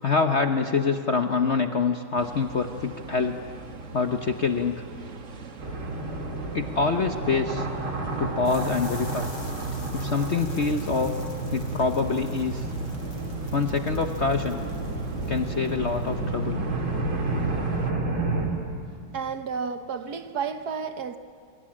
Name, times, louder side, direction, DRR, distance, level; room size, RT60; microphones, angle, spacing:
voice 1, 0.0-3.4 3.9-4.8 6.5-7.7 8.2-9.3 9.9-11.2 11.5-12.7 13.5-14.6 15.3-16.6, left 4 dB, 50° left, 0.9 m, -25 dB
sound 1, 2.2-17.9, right 4 dB, 40° right, 1.5 m, -42 dB
sound 2, 5.6-18.5, right 2 dB, 85° right, 4.3 m, -31 dB
sound 3, 8.4-16.3, left 3 dB, 80° left, 4.1 m, -48 dB
voice 2, 19.1-21.2, right 6 dB, 60° right, 1.3 m, -31 dB
26.5 x 22.5 x 8.8 m
omnidirectional pair, 2.2 m